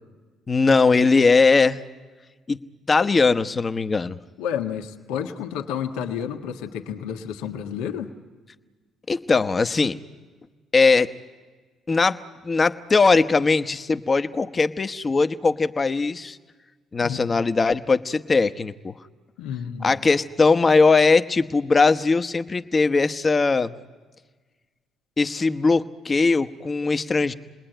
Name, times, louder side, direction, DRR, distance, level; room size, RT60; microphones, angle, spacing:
voice 1, 0.5-1.8 2.5-2.6 2.9-4.2 9.1-10.0 10.7-11.1 11.9-16.4 16.9-18.9 19.8-23.7 25.2-27.3, left 4 dB, 30° left, 10 dB, 1.0 m, -20 dB
voice 2, 4.4-8.1 17.0-17.2 19.4-20.0, left 8 dB, 85° left, 4 dB, 1.4 m, -30 dB
29.0 x 20.0 x 9.1 m, 1.4 s
supercardioid pair, 70°, 0 cm